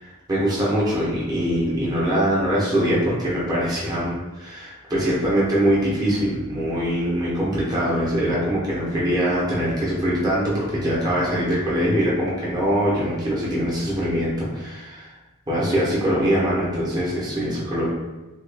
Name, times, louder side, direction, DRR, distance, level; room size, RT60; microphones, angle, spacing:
voice 1, 0.0-15.1 15.5-17.9, equal, 20° right, -7 dB, 0.9 m, -23 dB
3.0 x 2.4 x 3.4 m, 1.1 s
head